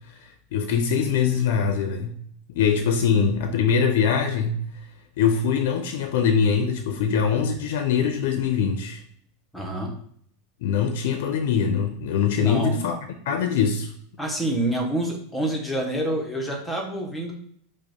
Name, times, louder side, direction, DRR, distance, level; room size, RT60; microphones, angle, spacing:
voice 1, 0.5-2.2 2.5-4.6 5.2-9.0 10.6-13.0 13.3-13.9, left 6 dB, 70° left, 6 dB, 0.4 m, -23 dB
voice 2, 9.5-9.9 12.4-12.8 14.2-17.3, right 1 dB, 5° left, 0 dB, 0.6 m, -27 dB
4.9 x 2.0 x 2.9 m, 0.64 s
supercardioid pair, 160°, 0 cm